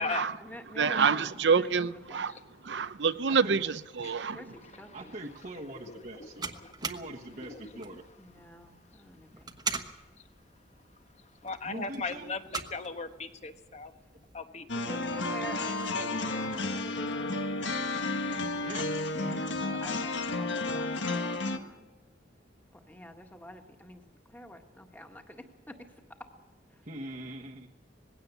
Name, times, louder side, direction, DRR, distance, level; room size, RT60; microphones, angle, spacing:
voice 1, 0.0-2.3 4.3-5.2 8.2-9.5 14.7-17.3 19.2-21.9 22.7-24.0 24.3-25.9 26.2-26.3 26.7-26.8, left 1 dB, 10° left, 1.8 m, -47 dB
voice 2, 0.8-2.3 2.6-4.4, right 5 dB, 70° right, 0.7 m, -27 dB
voice 3, 3.3-3.6 4.9-6.5 6.8-8.0 11.6-12.3 18.6-18.9 19.1-19.4 26.9-27.7, right 1 dB, 45° right, 1.2 m, -42 dB
voice 4, 4.0-4.7 5.9-6.3 6.6-6.7 7.4-8.0 11.4-13.9 14.3-14.7 15.9-16.2, left 4 dB, 40° left, 1.2 m, -38 dB
sound 1, 5.2-14.4, right 4 dB, 20° right, 1.1 m, -43 dB
sound 2, 14.7-21.6, left 2 dB, 80° left, 1.5 m, -32 dB
19.5 x 16.5 x 8.1 m
head